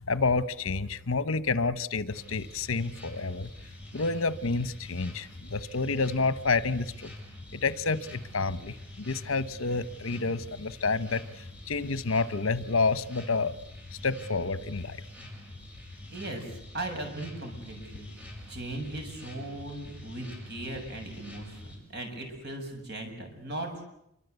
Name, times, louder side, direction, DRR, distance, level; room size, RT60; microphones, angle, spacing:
voice 1, 0.1-3.5 3.9-7.1 7.5-13.5 13.9-15.0, left 4 dB, 75° left, 15 dB, 1.0 m, -29 dB
sound 1, 2.1-21.8, left 1 dB, 5° right, 6.8 m, -46 dB
voice 2, 16.1-23.8, right 2 dB, 50° right, 4 dB, 7.3 m, -38 dB
27.5 x 24.5 x 8.2 m, 0.79 s
head